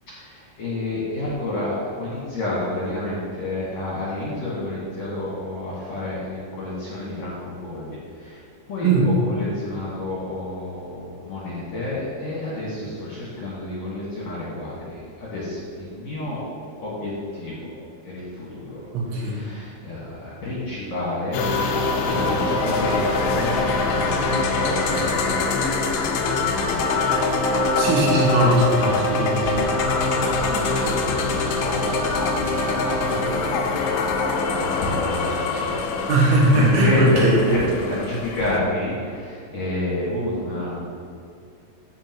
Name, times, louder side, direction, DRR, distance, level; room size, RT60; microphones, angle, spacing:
voice 1, 0.1-8.4 8.7-8.9 9.3-16.4 16.8-17.6 18.0-18.8 19.2-27.0 27.3-27.4 28.8-29.1 30.0-33.5 34.0-35.6 36.2-40.8, left 1 dB, 55° left, -7 dB, 2.0 m, -29 dB
voice 2, 8.8-9.2 12.7-12.8 18.9-19.4 27.8-29.5 30.7-30.9 36.1-37.4, right 1 dB, 85° right, -4 dB, 3.9 m, -19 dB
sound 1, 21.3-38.6, left 3 dB, 85° left, 2.1 m, -23 dB
14.5 x 5.7 x 3.0 m, 2.3 s
omnidirectional pair, 5.2 m